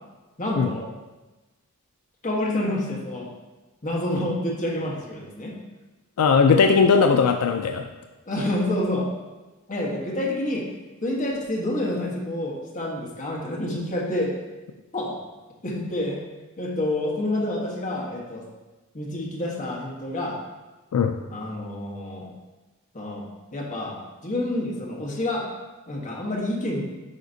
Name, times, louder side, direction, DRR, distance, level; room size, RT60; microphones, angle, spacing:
voice 1, 0.4-0.9 2.2-3.3 3.8-5.6 8.3-9.1 9.7-10.7 11.0-14.3 14.9-15.2 15.6-16.2 16.6-18.5 18.9-20.4 21.3-22.3 22.9-23.3 23.5-25.5 25.9-26.8, left 1 dB, 35° left, -3 dB, 1.3 m, -28 dB
voice 2, 6.2-7.9 20.9-21.1, left 5 dB, 80° left, 6 dB, 0.4 m, -18 dB
9.3 x 4.9 x 2.7 m, 1.2 s
head